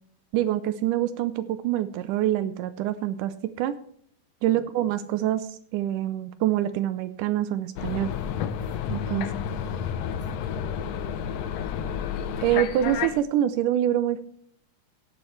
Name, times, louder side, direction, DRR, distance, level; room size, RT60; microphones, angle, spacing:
voice 1, 0.3-3.7 4.4-8.1 8.9-9.3 12.4-14.2, right 12 dB, 85° right, 12 dB, 2.2 m, -25 dB
voice 2, 4.5-5.0, left 1 dB, 25° right, -1 dB, 3.9 m, -49 dB
sound 1, 7.8-13.2, left 8 dB, 75° left, 1.7 m, -31 dB
17.0 x 9.1 x 3.2 m, 0.62 s
omnidirectional pair, 3.6 m